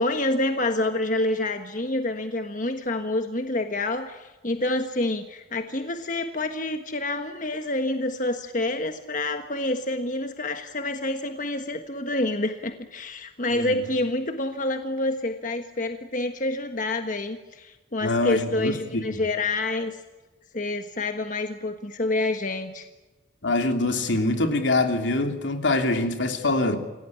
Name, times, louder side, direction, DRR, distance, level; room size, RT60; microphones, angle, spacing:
voice 1, 0.0-20.0 20.5-22.9, left 2 dB, 45° left, 1.5 m, -27 dB
voice 2, 13.5-13.8 18.0-19.2 23.4-26.8, left 2 dB, 80° left, 3.1 m, -24 dB
28.0 x 17.5 x 9.8 m
head